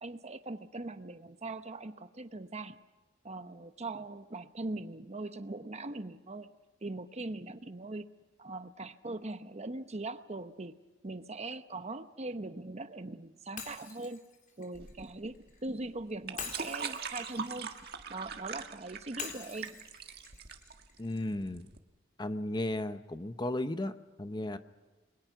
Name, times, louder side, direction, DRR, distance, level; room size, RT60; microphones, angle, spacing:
voice 1, 0.0-2.8 3.2-6.5 6.8-8.1 8.4-10.8 11.0-14.2 14.6-15.4 15.6-17.7 18.1-19.8, right 2 dB, 35° right, 10 dB, 0.9 m, -41 dB
Shatter, 13.6-15.6 16.4-18.5 19.2-21.3, left 5 dB, 45° left, 3.8 m, -46 dB
sound 1, 14.7-21.8, right 6 dB, 55° right, 1.6 m, -42 dB
voice 2, 21.0-21.7 22.2-24.6, left 1 dB, 20° left, 10 dB, 0.8 m, -35 dB
30.0 x 22.0 x 6.0 m, 1.2 s
head